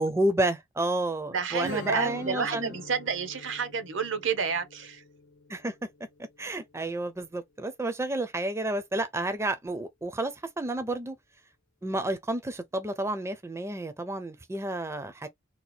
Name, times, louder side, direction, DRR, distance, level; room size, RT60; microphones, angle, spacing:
voice 1, 0.0-2.7 5.5-5.7 6.4-11.2 11.8-15.3, right 1 dB, 15° right, 0.4 m, -30 dB
voice 2, 1.3-5.0, right 5 dB, 70° right, 0.7 m, -30 dB
Strum, 1.6-7.0, left 3 dB, 75° left, 0.7 m, -47 dB
2.8 x 2.3 x 4.1 m
head